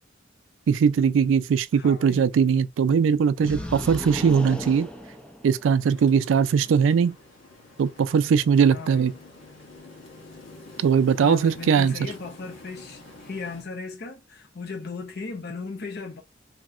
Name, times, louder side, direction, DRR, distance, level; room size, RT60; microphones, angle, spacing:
voice 1, 0.7-4.9 5.4-7.2 7.8-9.1 10.8-11.9, right 6 dB, 80° right, 0.3 m, -20 dB
voice 2, 1.7-2.2 8.7-9.1 11.2-16.2, left 4 dB, 55° left, 0.7 m, -36 dB
sound 1, 3.4-5.9, equal, 5° left, 0.5 m, -35 dB
sound 2, 5.8-13.6, left 2 dB, 85° left, 1.2 m, -47 dB
3.0 x 2.8 x 2.4 m
head